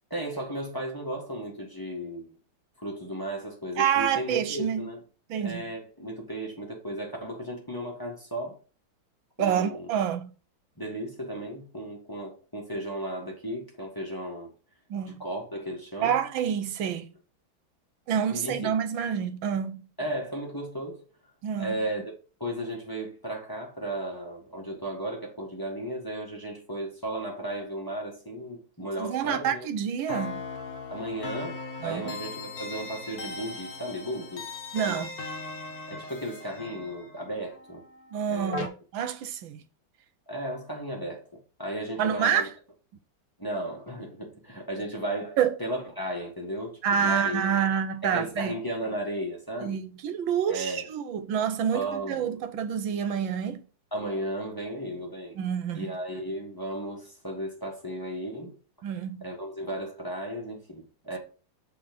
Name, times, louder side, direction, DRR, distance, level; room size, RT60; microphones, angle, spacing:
voice 1, 0.1-2.3 2.8-5.0 5.4-8.6 9.4-9.9 10.8-14.5 15.2-16.1 18.3-18.7 20.0-21.0 21.6-22.1 22.4-29.7 30.9-34.4 34.8-35.1 35.9-37.8 38.3-38.7 40.3-41.2 41.6-42.5 43.4-47.6 48.0-49.8 50.5-50.8 51.7-52.4 53.9-55.4 55.7-58.5 59.2-61.2, right 1 dB, 10° left, 1.6 m, -35 dB
voice 2, 3.8-4.9 5.3-5.6 9.4-10.3 14.9-15.2 16.0-17.1 18.1-19.9 21.4-21.8 29.0-30.4 31.8-32.2 34.7-35.1 38.1-38.7 38.9-39.6 42.0-42.5 45.4-45.6 46.8-48.5 49.6-53.6 55.4-56.0 58.8-59.3, right 8 dB, 80° right, 1.5 m, -28 dB
sound 1, 30.1-38.7, left 3 dB, 55° left, 1.4 m, -38 dB
7.0 x 3.6 x 5.2 m
omnidirectional pair, 2.1 m